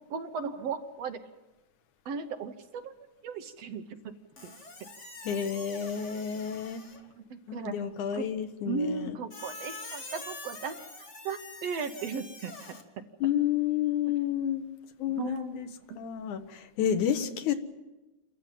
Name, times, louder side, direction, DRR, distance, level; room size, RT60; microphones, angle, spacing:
voice 1, 0.1-1.2 2.1-2.9 3.2-4.1 4.4-4.5 7.3-7.8 8.2-8.3 8.7-12.5 15.2-15.6, right 5 dB, 65° right, 7 dB, 2.1 m, -36 dB
Squeak, 4.4-7.1 9.3-12.8, left 3 dB, 25° left, 1.9 m, -45 dB
voice 2, 5.2-6.8 7.5-9.2 13.2-14.6 15.0-15.7 16.0-17.5, left 9 dB, 85° left, 8 dB, 2.7 m, -30 dB
27.5 x 14.0 x 9.2 m, 1.1 s
omnidirectional pair, 3.4 m